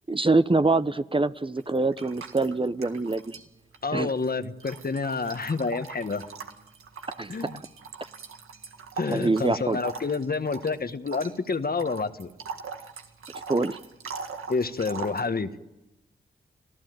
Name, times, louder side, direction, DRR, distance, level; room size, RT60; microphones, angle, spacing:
voice 1, 0.1-3.4 3.9-4.1 7.2-7.3 9.1-9.8 13.5-13.8, right 3 dB, 25° right, 12 dB, 0.9 m, -24 dB
sound 1, 1.6-3.5 3.7-15.3, right 5 dB, 85° right, 1.9 m, -41 dB
voice 2, 3.8-6.2 7.3-7.6 9.0-12.3 14.5-15.5, left 4 dB, 45° left, 10 dB, 1.4 m, -28 dB
26.5 x 15.5 x 9.3 m, 0.98 s
cardioid pair, 45°, 21 cm